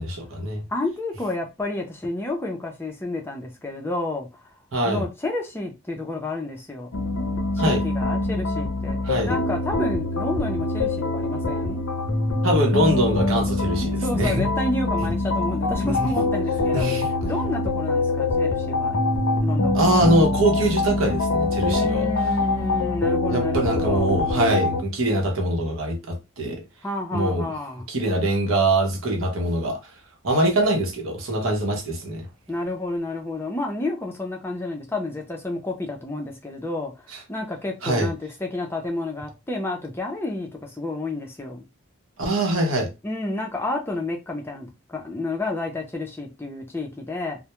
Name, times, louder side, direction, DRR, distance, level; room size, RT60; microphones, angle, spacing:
voice 1, 0.0-0.6 4.7-5.1 7.6-7.8 9.0-9.3 12.4-14.5 15.8-16.1 16.7-17.1 19.7-22.1 23.3-26.6 27.1-27.5 27.9-29.8 30.2-32.3 37.1-37.2 37.8-38.1 42.2-42.9, right 1 dB, 75° right, 0.8 m, -23 dB
voice 2, 0.7-4.5 4.8-7.0 7.5-9.0 9.3-11.8 13.9-16.9 17.2-19.0 19.4-20.0 21.7-24.1 26.8-27.9 32.5-36.9 37.3-41.6 43.0-47.4, left 2 dB, 10° left, 0.4 m, -30 dB
sound 1, 6.9-24.8, left 2 dB, 70° left, 0.5 m, -24 dB
2.2 x 2.0 x 2.9 m
head